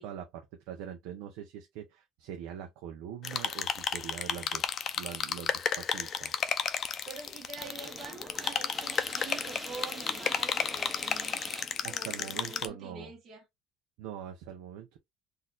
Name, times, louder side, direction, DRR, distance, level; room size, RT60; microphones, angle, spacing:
voice 1, 0.0-6.3 11.8-13.1 14.0-15.0, right 9 dB, 80° right, 0.6 m, -43 dB
sound 1, 3.2-12.6, left 7 dB, 40° left, 0.5 m, -33 dB
voice 2, 7.0-11.4 11.8-13.4, right 4 dB, 40° right, 1.4 m, -46 dB
sound 2, 7.6-12.6, right 1 dB, ahead, 0.8 m, -44 dB
4.1 x 2.6 x 2.4 m
cardioid pair, 120°, 0 cm